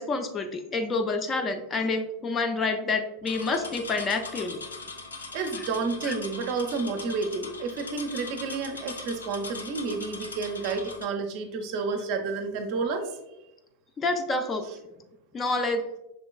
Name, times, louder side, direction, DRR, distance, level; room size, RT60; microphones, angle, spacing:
voice 1, 0.0-4.6 6.0-6.1 14.0-14.6 15.3-15.8, left 3 dB, 20° left, 6 dB, 0.4 m, -28 dB
sound 1, 3.3-11.0, left 3 dB, 75° left, 0.5 m, -40 dB
voice 2, 5.3-13.1, right 4 dB, 45° right, 5 dB, 0.6 m, -30 dB
5.6 x 3.7 x 2.3 m, 0.94 s
figure-of-eight pair, 90°, 0 cm